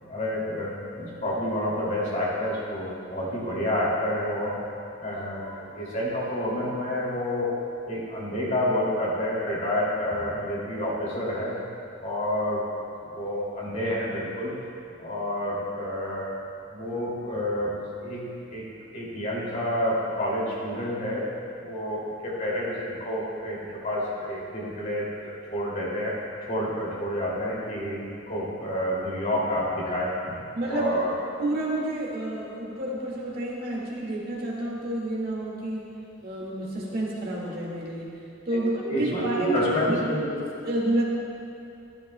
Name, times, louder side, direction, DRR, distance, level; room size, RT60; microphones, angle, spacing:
voice 1, 0.0-4.5 5.0-7.5 7.9-11.5 12.0-12.6 13.0-14.5 15.0-16.2 16.7-17.7 18.0-18.2 18.5-18.6 18.9-21.2 21.6-26.1 26.5-30.1 30.7-31.1 38.5-40.3, left 1 dB, 40° left, -6 dB, 2.7 m, -29 dB
sound 1, 1.4-1.6 2.4-2.6 3.4-3.5 4.4-4.5 5.4-5.5 6.4-6.9, right 8 dB, 5° left, 2.3 m, -45 dB
voice 2, 30.5-31.0 31.4-35.9 36.2-40.2 40.6-41.0, right 1 dB, 45° right, -5 dB, 2.0 m, -30 dB
14.5 x 12.5 x 2.3 m, 2.7 s
head